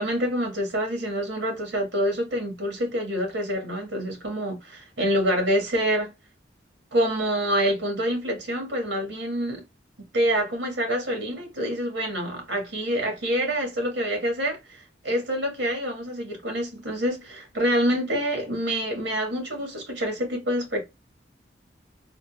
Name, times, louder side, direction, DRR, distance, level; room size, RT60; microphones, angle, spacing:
voice 1, 0.0-6.1 6.9-9.6 10.1-20.8, equal, 90° right, 1.6 m, -26 dB
3.8 x 2.4 x 2.3 m
head